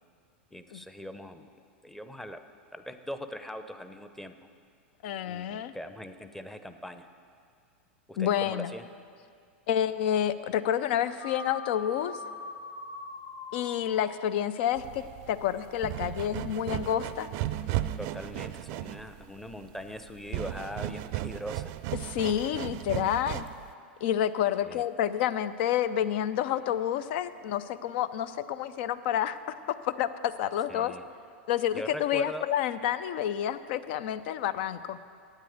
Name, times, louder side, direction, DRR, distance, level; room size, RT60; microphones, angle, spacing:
voice 1, 0.5-1.5 1.8-2.4 2.7-4.3 5.2-7.1 8.1-8.9 18.0-21.7 24.6-24.8 30.7-31.1 31.7-32.5, equal, 5° left, 8 dB, 0.7 m, -40 dB
voice 2, 5.0-5.7 8.2-8.7 9.7-12.2 13.5-17.3 22.0-23.5 24.0-29.4 29.8-30.9 31.5-35.0, left 10 dB, 60° left, 14 dB, 0.5 m, -29 dB
sound 1, 11.2-15.7, left 3 dB, 80° left, 1.1 m, -43 dB
sound 2, 14.8-23.7, right 14 dB, 50° right, 0.5 m, -35 dB
9.2 x 8.3 x 7.9 m, 2.3 s
hypercardioid pair, 100°, 6 cm